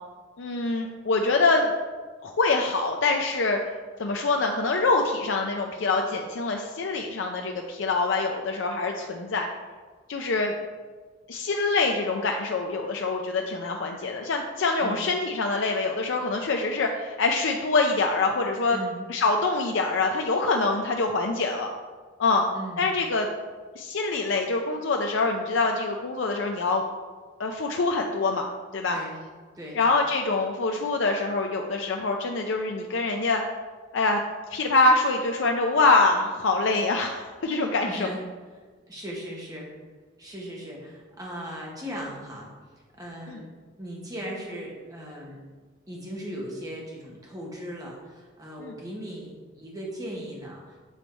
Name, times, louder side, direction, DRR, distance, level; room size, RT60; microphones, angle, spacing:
voice 1, 0.4-1.7 2.2-3.6 4.0-9.5 10.1-10.6 11.3-18.8 19.1-21.7 22.2-22.4 22.8-23.3 23.8-26.8 27.4-28.5 28.7-29.0 29.7-33.4 33.9-34.2 34.5-38.1 43.3-43.4 48.6-48.7, left 3 dB, 70° left, 2 dB, 0.5 m, -25 dB
voice 2, 18.7-19.0 22.5-22.9 28.9-29.2 29.5-29.8 37.8-38.2 38.9-39.7 40.2-43.5 43.8-45.5 45.9-50.8, equal, 20° right, -3 dB, 1.4 m, -38 dB
7.2 x 4.1 x 4.5 m, 1.4 s
head